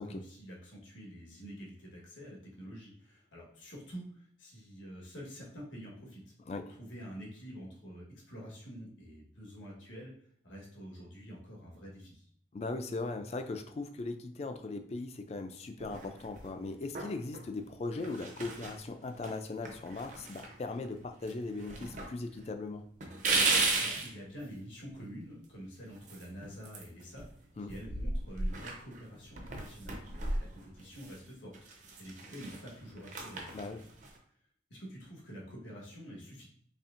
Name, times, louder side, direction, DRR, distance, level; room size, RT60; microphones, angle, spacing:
voice 1, 0.0-6.3 6.7-10.1 10.4-12.3 23.8-27.3 27.6-33.8 34.7-36.5, equal, 90° left, -3 dB, 1.4 m, -47 dB
voice 2, 12.5-22.8 27.6-27.7 33.5-33.8, left 3 dB, 35° left, 7 dB, 0.3 m, -39 dB
sound 1, 15.8-16.5 17.0-17.4 17.9-18.8 19.2-19.3 19.6-21.0 21.2-22.1 22.4-22.5 23.0-24.1 25.9-27.3 27.6-31.2 31.5-34.2, right 3 dB, 40° right, 0.6 m, -35 dB
4.2 x 3.3 x 2.5 m, 0.64 s
head